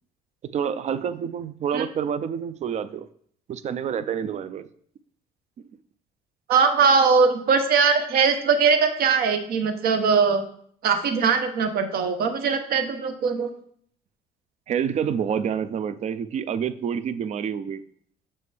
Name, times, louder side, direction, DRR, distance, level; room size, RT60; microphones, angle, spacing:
voice 1, 0.5-3.1 3.5-4.7 14.7-17.8, right 8 dB, 45° right, 13 dB, 0.4 m, -28 dB
voice 2, 6.5-10.4 10.8-13.5, right 5 dB, 65° right, 7 dB, 0.8 m, -21 dB
6.8 x 4.4 x 3.4 m, 0.63 s
cardioid pair, 110°, 17 cm